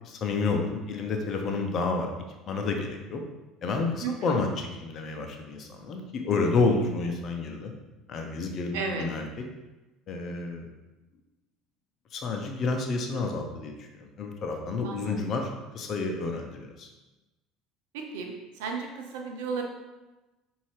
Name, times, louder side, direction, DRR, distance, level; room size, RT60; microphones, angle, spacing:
voice 1, 0.0-2.1 2.5-3.2 3.6-7.7 8.1-9.3 10.1-10.7 12.1-13.7 14.0-15.5 15.7-16.9, left 3 dB, 50° left, 3 dB, 0.7 m, -29 dB
voice 2, 4.0-4.4 8.7-9.0 14.8-15.2 17.9-19.6, right 5 dB, 75° right, 3 dB, 0.6 m, -34 dB
5.4 x 2.7 x 3.2 m, 1.1 s
hypercardioid pair, 70°, 0 cm